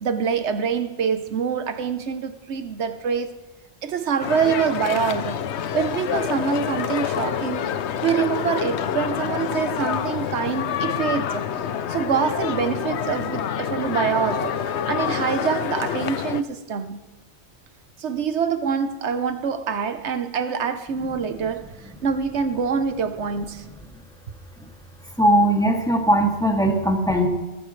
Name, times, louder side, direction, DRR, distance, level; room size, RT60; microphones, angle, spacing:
voice 1, 0.0-3.3 3.8-7.7 8.0-11.5 11.9-17.1 18.0-23.7, right 6 dB, 85° right, 1.2 m, -25 dB
sound 1, 4.2-16.4, left 8 dB, 80° left, 1.0 m, -27 dB
voice 2, 25.2-27.3, right 1 dB, 5° left, 2.3 m, -19 dB
21.0 x 14.5 x 3.2 m
omnidirectional pair, 1.1 m